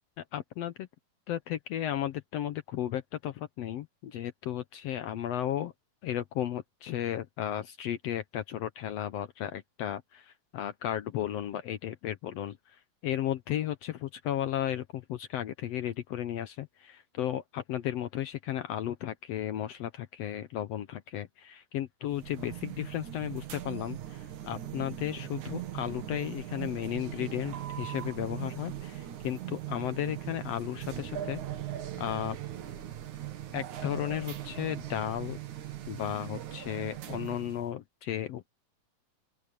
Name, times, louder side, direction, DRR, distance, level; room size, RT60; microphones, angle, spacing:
voice 1, 0.2-0.9 1.3-5.7 6.0-31.4 32.0-32.4 33.5-35.4 35.9-38.5, left 11 dB, 70° left, 1.8 m, -34 dB
sound 1, 22.1-37.7, right 12 dB, 85° right, 3.2 m, -40 dB
open air
omnidirectional pair, 3.3 m